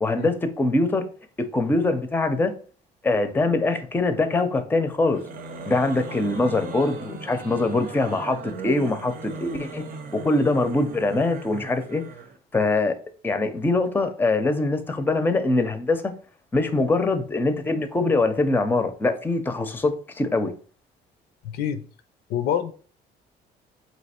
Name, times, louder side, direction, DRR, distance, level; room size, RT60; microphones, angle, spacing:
voice 1, 0.0-1.0 1.4-2.5 3.0-5.2 5.7-9.9 10.1-12.0 12.5-13.0 13.2-16.1 16.5-20.5, left 2 dB, 10° left, 0.5 m, -23 dB
sound 1, 5.0-12.4, right 3 dB, 55° right, 0.7 m, -38 dB
voice 2, 21.4-21.9 22.3-22.7, left 9 dB, 75° left, 0.5 m, -26 dB
3.3 x 2.8 x 4.2 m
cardioid pair, 110°, 17 cm